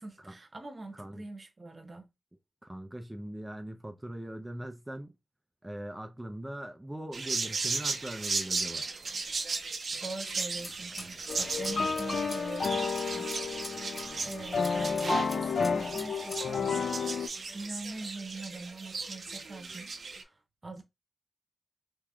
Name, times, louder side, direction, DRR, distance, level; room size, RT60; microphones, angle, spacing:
voice 1, 0.0-2.1 10.0-13.3 13.7-16.9 17.5-20.8, right 2 dB, 45° right, 0.9 m, -43 dB
voice 2, 0.9-1.3 2.6-5.2 5.6-8.9, right 1 dB, 15° right, 0.5 m, -41 dB
sound 1, 7.1-20.2, right 4 dB, 75° right, 0.5 m, -36 dB
sound 2, 10.5-16.4, left 1 dB, 40° left, 1.5 m, -48 dB
sound 3, 11.3-17.3, left 5 dB, 75° left, 0.4 m, -31 dB
3.5 x 2.9 x 2.3 m
cardioid pair, 60°, 0 cm